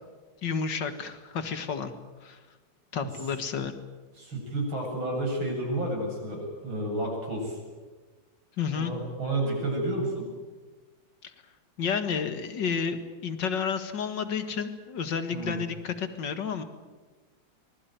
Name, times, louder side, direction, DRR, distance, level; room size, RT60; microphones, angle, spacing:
voice 1, 0.4-1.9 2.2-2.4 2.9-3.7 8.6-8.9 11.2-11.3 11.8-16.6, left 6 dB, 65° left, 10 dB, 2.4 m, -31 dB
voice 2, 4.2-7.6 8.7-10.3 15.3-15.6, right 1 dB, 85° right, 0 dB, 8.8 m, -31 dB
25.0 x 21.0 x 9.4 m, 1.3 s
omnidirectional pair, 2.1 m